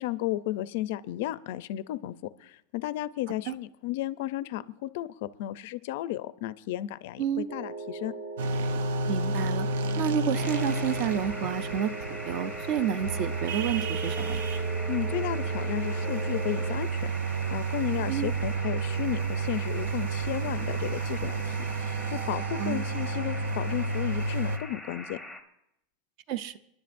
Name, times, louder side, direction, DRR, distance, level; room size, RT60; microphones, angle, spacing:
voice 1, 0.0-2.1 2.4-8.1 14.9-17.0 17.5-25.2, left 14 dB, 50° left, 15 dB, 0.4 m, -33 dB
sound 1, 7.5-16.8, right 3 dB, 75° right, 2.0 m, -39 dB
sound 2, 8.4-24.6, right 3 dB, 90° right, 0.8 m, -31 dB
voice 2, 9.1-9.7 10.0-14.4 18.1-18.3 22.6-22.8 26.3-26.6, right 9 dB, 35° right, 15 dB, 0.5 m, -30 dB
sound 3, 10.3-25.4, left 1 dB, 5° right, 0.8 m, -43 dB
29.5 x 10.5 x 2.6 m, 0.80 s
supercardioid pair, 180°, 0 cm